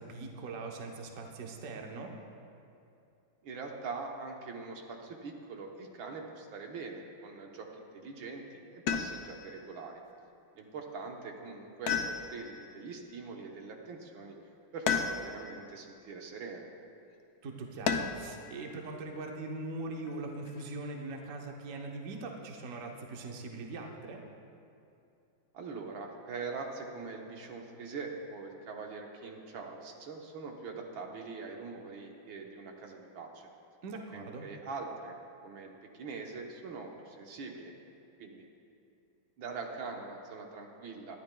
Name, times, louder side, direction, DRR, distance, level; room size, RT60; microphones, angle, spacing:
voice 1, 0.0-2.2 17.4-24.2 33.8-34.5, right 3 dB, 50° right, 1 dB, 1.1 m, -41 dB
voice 2, 3.4-9.9 10.6-14.3 14.7-16.7 25.5-33.5 34.1-35.2 35.4-37.7 38.2-38.5 39.4-41.2, right 4 dB, 75° right, 1 dB, 1.8 m, -43 dB
sound 1, 8.9-9.5 11.9-12.7 14.9-15.6 17.9-18.4 20.1-20.7, left 7 dB, 70° left, 0.9 m, -33 dB
19.5 x 12.0 x 2.3 m, 2.6 s
omnidirectional pair, 2.2 m